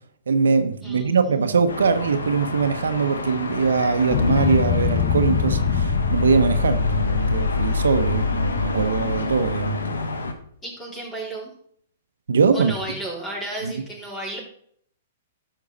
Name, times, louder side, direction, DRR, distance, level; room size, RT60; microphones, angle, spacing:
voice 1, 0.3-10.0 12.3-12.7 13.6-13.7, right 5 dB, 85° right, 1.0 m, -22 dB
voice 2, 0.8-1.5 10.6-11.5 12.5-14.4, right 1 dB, 10° left, 4.2 m, -33 dB
sound 1, 1.7-10.3, left 3 dB, 90° left, 1.4 m, -30 dB
sound 2, 4.1-9.8, left 6 dB, 50° left, 1.0 m, -23 dB
11.5 x 6.5 x 4.1 m
hypercardioid pair, 125°, 0 cm